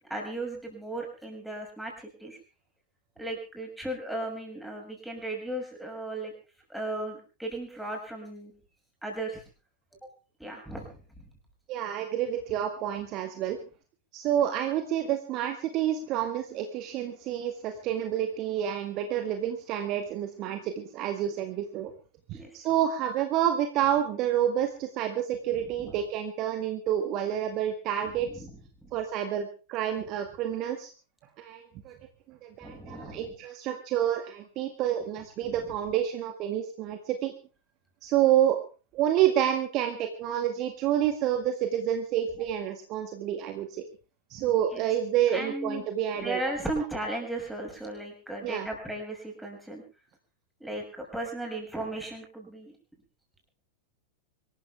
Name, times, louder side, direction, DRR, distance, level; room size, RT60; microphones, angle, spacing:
voice 1, 0.1-2.4 3.2-6.3 6.7-8.5 9.0-9.4 10.0-10.1 10.4-11.3 22.3-22.5 25.8-26.0 28.3-28.5 28.8-28.9 32.6-33.3 35.4-35.7 44.7-44.8 45.3-45.9 46.2-49.8 50.6-52.8, right 1 dB, 5° right, 0 dB, 6.9 m, -36 dB
voice 2, 11.7-13.6 14.1-21.9 22.3-28.4 28.9-30.9 31.4-32.0 32.3-37.3 38.0-38.6 38.9-43.8 44.3-46.4 48.4-48.7, right 10 dB, 40° right, 6 dB, 1.8 m, -28 dB
25.0 x 14.0 x 3.5 m, 0.34 s
figure-of-eight pair, 90°, 0 cm